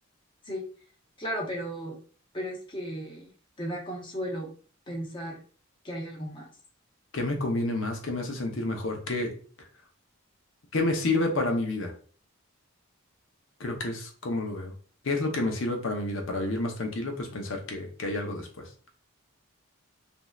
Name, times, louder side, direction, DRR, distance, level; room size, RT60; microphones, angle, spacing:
voice 1, 1.2-2.0 2.3-3.3 3.6-4.5 4.9-5.4 5.8-6.5, equal, 25° left, -2 dB, 0.7 m, -35 dB
voice 2, 7.1-9.4 10.7-11.9 13.6-14.7 15.0-18.5, left 2 dB, 65° left, 3 dB, 0.7 m, -29 dB
3.1 x 2.6 x 2.3 m, 0.42 s
head